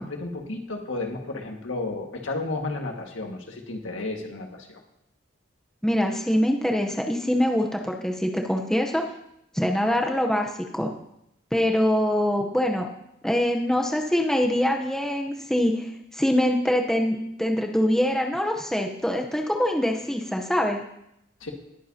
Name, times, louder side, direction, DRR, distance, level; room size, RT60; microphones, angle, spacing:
voice 1, 0.0-4.8 21.4-21.5, left 2 dB, 80° left, 2 dB, 1.8 m, -32 dB
voice 2, 5.8-9.0 9.5-10.9 11.5-12.9 13.2-20.8, equal, 5° left, 1 dB, 0.8 m, -24 dB
19.5 x 9.3 x 2.8 m, 0.80 s
head